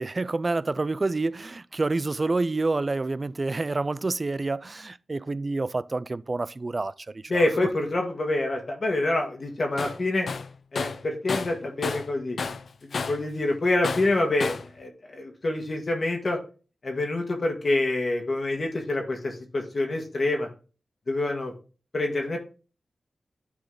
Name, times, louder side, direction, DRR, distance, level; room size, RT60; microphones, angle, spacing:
voice 1, 0.0-6.9 7.3-7.4, right 3 dB, 40° right, 0.3 m, -28 dB
voice 2, 7.3-10.3 10.7-12.4 13.1-16.4 16.8-20.5 21.1-21.5 21.9-22.4, left 2 dB, 50° left, 1.5 m, -26 dB
Tools, 9.8-10.0 10.3-12.1 12.4-13.3 13.8-14.7, left 4 dB, 70° left, 0.4 m, -31 dB
9.7 x 4.0 x 3.8 m
cardioid pair, 65°, 0 cm